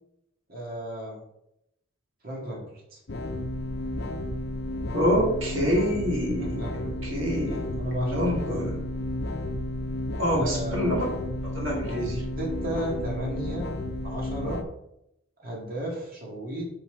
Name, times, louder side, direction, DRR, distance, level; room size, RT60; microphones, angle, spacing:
voice 1, 0.5-1.2 2.2-2.6 2.9-3.0 6.4-7.0 7.5-8.2 10.3-11.0 12.4-13.7 14.0-14.6 15.4-16.7, right 1 dB, 45° right, -3 dB, 2.1 m, -33 dB
sound 1, 3.1-14.6, left 1 dB, 55° left, 0.7 m, -32 dB
voice 2, 4.9-8.8 10.2-11.0 11.4-12.2, equal, 70° right, -3 dB, 2.0 m, -27 dB
5.8 x 5.8 x 4.4 m, 0.81 s
head